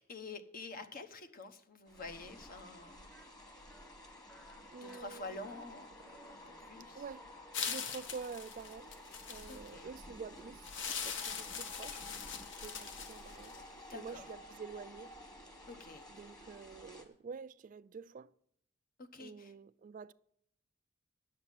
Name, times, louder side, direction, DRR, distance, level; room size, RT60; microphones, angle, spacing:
voice 1, 0.0-3.0 4.8-5.9 6.6-7.0 9.5-9.9 13.9-14.2 15.7-16.1 19.1-19.5, left 3 dB, 45° left, 1.1 m, -47 dB
sound 1, 1.9-17.0, left 1 dB, 20° left, 1.7 m, -53 dB
sound 2, 3.1-3.3 3.7-4.0 4.3-4.6 4.9-5.7 6.0-6.4, right 1 dB, 5° left, 0.9 m, -60 dB
voice 2, 4.7-5.4 7.0-7.3 7.7-8.9 9.3-10.7 11.0-12.1 12.6-13.6 13.9-15.2 16.1-18.3 19.2-20.1, right 5 dB, 45° right, 0.3 m, -48 dB
sound 3, 7.5-9.7 10.6-13.6, left 6 dB, 65° left, 1.2 m, -41 dB
9.8 x 7.2 x 7.5 m
head